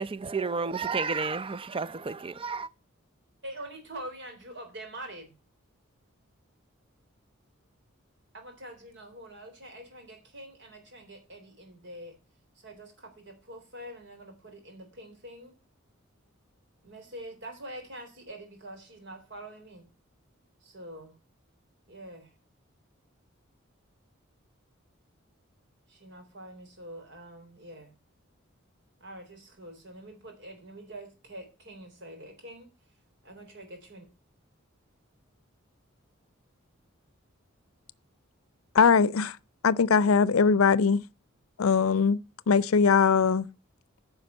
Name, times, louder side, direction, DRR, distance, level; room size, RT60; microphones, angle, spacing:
voice 1, 0.0-2.7, right 4 dB, 25° right, 0.5 m, -31 dB
voice 2, 3.4-5.4 8.3-12.2 12.6-15.6 16.8-19.9 20.6-21.2 21.9-22.3 25.9-27.9 29.0-32.7 33.2-34.0, right 1 dB, 60° right, 3.8 m, -45 dB
voice 3, 38.7-39.4 39.6-41.0 41.6-42.2 42.5-43.5, left 5 dB, 85° left, 0.5 m, -21 dB
9.7 x 5.7 x 7.9 m
head